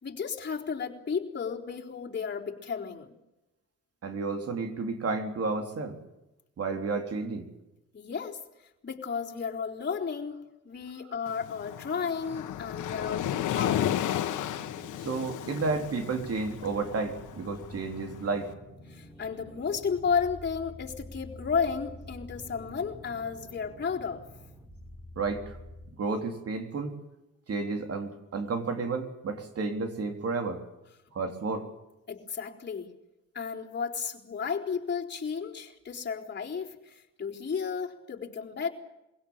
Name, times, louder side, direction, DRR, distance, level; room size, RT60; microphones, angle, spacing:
voice 1, 0.0-3.1 7.9-8.4 8.8-10.4 10.6-14.1 18.9-24.3 32.1-32.9 33.3-38.7, left 6 dB, 35° left, -1 dB, 4.0 m, -33 dB
voice 2, 4.0-6.0 6.6-7.5 15.0-18.5 25.2-25.6 26.0-26.9 27.5-30.6 31.1-31.7, right 4 dB, 50° right, 6 dB, 3.6 m, -31 dB
Waves surf, 11.3-18.4, left 11 dB, 85° left, 1.6 m, -33 dB
sound 1, 12.2-25.9, left 1 dB, 10° right, 4.4 m, -48 dB
23.5 x 17.0 x 8.9 m, 0.95 s
cardioid pair, 90°, 30 cm